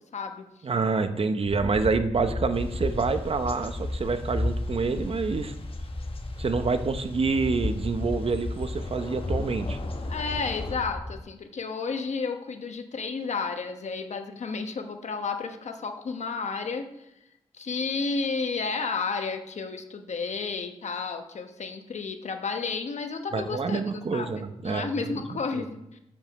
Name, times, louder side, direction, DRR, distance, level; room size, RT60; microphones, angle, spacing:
voice 1, 0.1-0.4 10.1-17.1 17.5-23.8 24.1-26.0, left 4 dB, 65° left, 6 dB, 1.0 m, -32 dB
voice 2, 0.6-5.5 6.4-9.8 23.3-25.2 25.6-25.7, right 4 dB, 50° right, 10 dB, 0.7 m, -27 dB
sound 1, 1.5-11.2, left 2 dB, 15° left, 0.4 m, -33 dB
Thunder / Rain, 2.5-10.8, left 3 dB, 45° left, 1.2 m, -45 dB
7.1 x 5.3 x 6.8 m, 0.85 s
cardioid pair, 70°, 13 cm